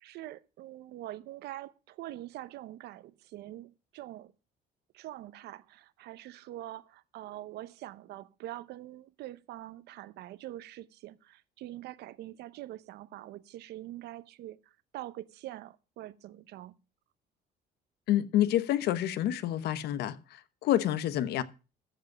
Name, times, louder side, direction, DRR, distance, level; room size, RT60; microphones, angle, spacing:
voice 1, 0.0-4.3 4.9-14.6 14.9-16.8, right 15 dB, 75° right, 0.8 m, -44 dB
voice 2, 18.1-21.4, left 12 dB, 75° left, 1.0 m, -28 dB
14.0 x 5.3 x 7.1 m
cardioid pair, 110°, 17 cm